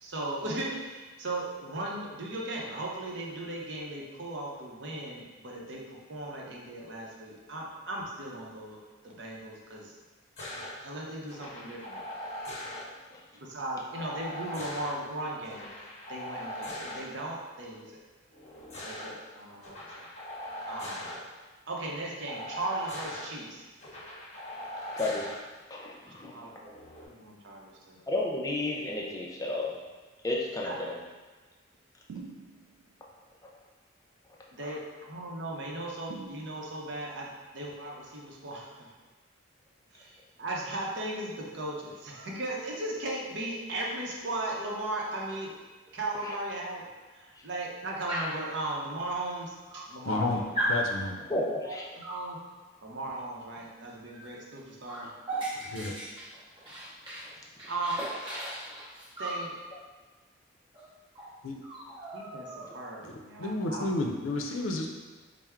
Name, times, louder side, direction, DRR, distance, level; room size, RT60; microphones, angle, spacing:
voice 1, 0.0-9.9 10.8-12.0 13.3-17.9 18.8-20.1 20.6-21.2 21.7-23.6 26.2-26.7 27.0-28.0 30.6-30.8 34.5-38.9 39.9-45.5 45.9-50.5 51.6-51.8 52.1-52.4 52.8-55.1 57.7-57.9 59.2-59.5 62.1-63.9, right 2 dB, 60° right, -3 dB, 0.7 m, -37 dB
sound 1, 10.4-10.7 11.3-12.8 13.9-14.9 15.5-17.0 18.3-19.1 19.6-21.2 22.2-23.2 23.8-25.4 26.7-27.0, left 1 dB, 35° left, 0.8 m, -40 dB
voice 2, 25.0-25.3 25.7-26.5 28.1-29.8 30.2-31.0 34.6-34.8 51.3-51.9, left 2 dB, 15° left, -2 dB, 0.4 m, -32 dB
sound 2, 32.1-32.9 36.1-37.0, right 4 dB, 90° right, 0.3 m, -45 dB
Dog, 48.1-48.5 49.3-49.4 49.7-50.2 50.5-50.9 52.0-52.3 54.1-54.3 54.6-57.3 57.6-59.4 60.7-60.8 61.1-61.3 61.6-62.9, right 1 dB, 25° right, 0.7 m, -36 dB
voice 3, 50.0-50.4 50.7-51.3 55.6-56.0 61.4-61.6 63.0-64.9, left 2 dB, 85° left, 2 dB, 0.5 m, -31 dB
4.3 x 2.0 x 3.5 m, 1.3 s
head